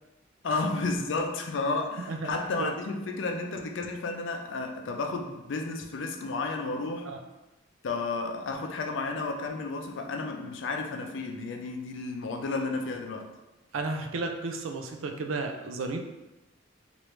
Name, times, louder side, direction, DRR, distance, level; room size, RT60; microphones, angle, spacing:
voice 1, 0.4-7.1 7.8-13.3, left 3 dB, 65° left, 4 dB, 0.4 m, -32 dB
voice 2, 2.1-2.7 7.1-7.2 13.7-16.0, right 3 dB, 80° right, 5 dB, 0.4 m, -33 dB
3.2 x 2.5 x 3.0 m, 1.0 s
head